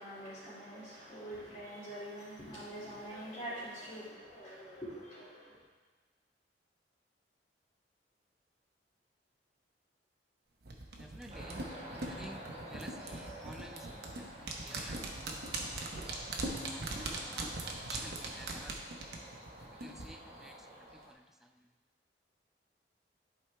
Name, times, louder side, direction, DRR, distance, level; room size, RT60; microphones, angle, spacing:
voice 1, 0.0-5.6, right 1 dB, 25° left, -15 dB, 2.5 m, -45 dB
sound 1, 10.7-20.1 20.4-20.5, right 2 dB, 60° right, 0.9 m, -40 dB
voice 2, 11.0-11.6 12.1-15.5 16.7-19.1 19.7-21.7, equal, ahead, 4 dB, 0.4 m, -53 dB
sound 2, 11.3-21.1, right 1 dB, 35° right, 1.3 m, -50 dB
11.5 x 4.7 x 3.4 m, 1.3 s
head